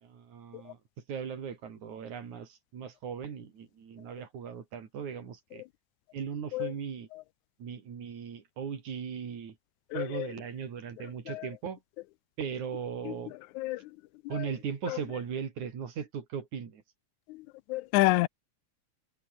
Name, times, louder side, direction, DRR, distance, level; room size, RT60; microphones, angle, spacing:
voice 1, 0.0-0.8 1.1-5.6 6.1-7.1 7.6-9.6 9.9-11.8 12.4-13.3 14.3-16.8, right 7 dB, 80° right, 4.3 m, -38 dB
voice 2, 9.9-10.3 11.3-11.5 13.1-13.2 13.6-13.8 14.3-14.4 14.9-15.0 17.7-18.3, left 19 dB, 85° left, 2.0 m, -28 dB
omnidirectional pair, 3.3 m